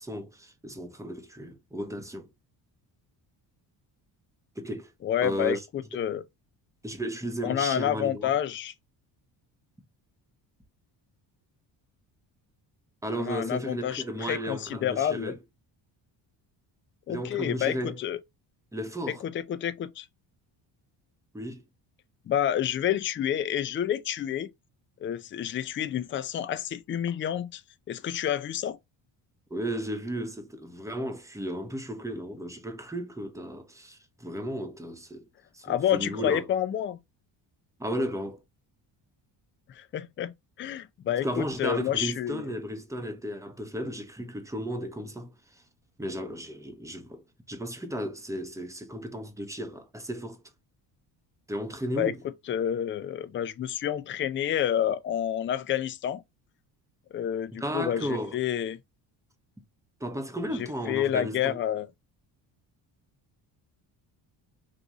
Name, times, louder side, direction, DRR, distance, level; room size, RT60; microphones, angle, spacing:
voice 1, 0.0-2.3 4.6-4.9 5.2-5.6 6.8-8.3 13.0-15.4 17.1-18.0 18.7-19.2 21.3-21.6 29.5-35.3 35.5-36.5 37.8-38.4 41.2-45.3 46.0-50.4 51.5-52.2 57.6-58.4 60.0-61.6, equal, 5° right, 0.8 m, -34 dB
voice 2, 5.0-6.2 7.4-8.7 13.2-15.3 17.1-18.2 19.2-20.1 22.3-24.5 25.0-27.6 27.9-28.8 35.6-37.0 39.7-40.3 40.6-42.5 52.0-52.1 52.5-56.2 57.1-58.8 60.6-61.9, left 10 dB, 30° left, 0.3 m, -29 dB
3.7 x 2.6 x 2.9 m
cardioid pair, 80°, 47 cm